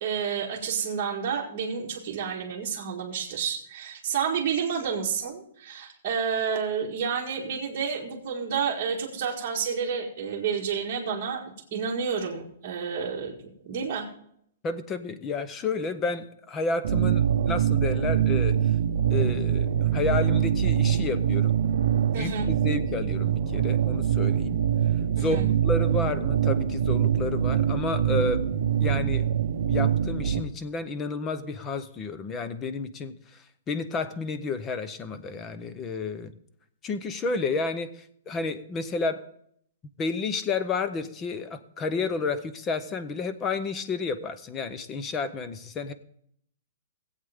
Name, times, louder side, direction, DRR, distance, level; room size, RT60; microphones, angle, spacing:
voice 1, 0.0-11.4 11.7-13.4 13.6-14.1 22.1-22.5 25.2-25.5, right 6 dB, 30° right, -5 dB, 1.9 m, -30 dB
voice 2, 14.6-18.6 19.1-21.6 22.1-24.6 25.2-28.5 28.8-29.3 29.7-33.1 33.7-36.3 36.8-39.2 40.0-45.9, left 4 dB, 15° left, 12 dB, 0.6 m, -31 dB
sound 1, 16.8-30.4, right 9 dB, 55° right, 0.7 m, -24 dB
18.0 x 8.0 x 3.5 m, 0.68 s
hypercardioid pair, 170°, 0 cm